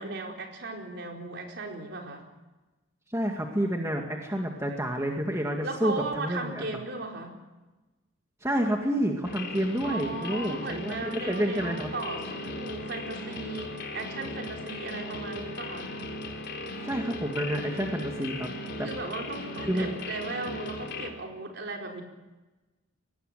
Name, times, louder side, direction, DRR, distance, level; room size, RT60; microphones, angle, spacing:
voice 1, 0.0-2.2 5.6-7.3 9.8-15.9 18.8-22.0, right 2 dB, 50° right, 2 dB, 4.5 m, -37 dB
voice 2, 3.1-6.6 8.4-11.9 16.8-18.5 18.8-18.9 19.6-19.9, equal, 15° right, 2 dB, 2.1 m, -29 dB
sound 1, 9.2-21.1, left 2 dB, 50° left, 4.3 m, -37 dB
23.5 x 18.5 x 9.2 m, 1.1 s
head